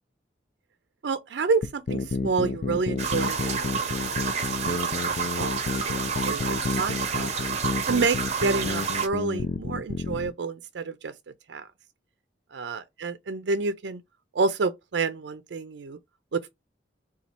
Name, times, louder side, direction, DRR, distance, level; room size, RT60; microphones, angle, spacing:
voice 1, 1.0-4.8 5.1-7.3 7.9-11.1 11.5-11.7 12.5-14.0 14.3-16.0 16.3-16.5, right 4 dB, 75° right, 0.5 m, -29 dB
sound 1, 1.6-10.3, left 3 dB, 50° left, 0.4 m, -30 dB
sound 2, 3.0-9.1, right 6 dB, 40° right, 0.7 m, -29 dB
4.0 x 2.3 x 4.4 m
head